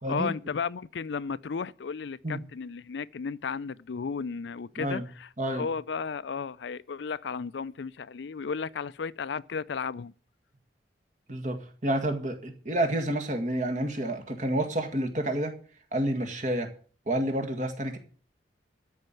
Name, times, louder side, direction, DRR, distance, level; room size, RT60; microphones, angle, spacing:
voice 1, 0.1-10.1, left 5 dB, 75° left, 0.5 m, -34 dB
voice 2, 5.4-5.7 11.3-15.5 15.9-16.7 17.1-18.0, right 1 dB, 40° right, 1.9 m, -29 dB
13.0 x 5.5 x 9.2 m
head